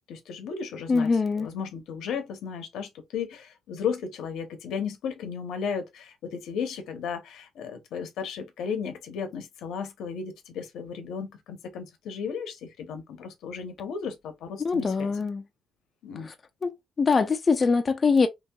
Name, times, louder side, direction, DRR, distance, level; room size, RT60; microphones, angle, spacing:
voice 1, 0.1-1.1 1.4-15.1 16.0-16.3, left 6 dB, 80° left, 0.7 m, -34 dB
voice 2, 0.9-1.5 14.6-15.4 16.3-16.4 16.6-18.3, left 4 dB, 35° left, 0.3 m, -23 dB
2.9 x 2.8 x 2.2 m
cardioid pair, 90°, 0 cm